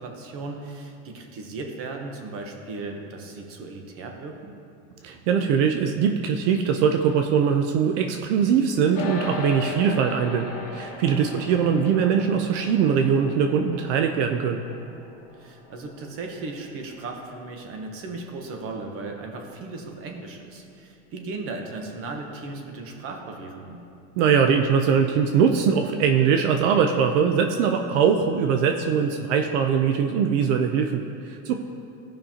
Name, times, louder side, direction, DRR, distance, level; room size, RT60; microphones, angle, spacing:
voice 1, 0.0-4.6 11.3-11.5 15.3-23.8, right 3 dB, 35° right, 3 dB, 1.0 m, -36 dB
voice 2, 5.0-14.6 24.2-31.6, right 7 dB, 70° right, 5 dB, 0.6 m, -22 dB
sound 1, 8.9-18.5, left 3 dB, 60° left, 1.4 m, -38 dB
15.5 x 5.4 x 2.9 m, 2.6 s
supercardioid pair, 160°, 37 cm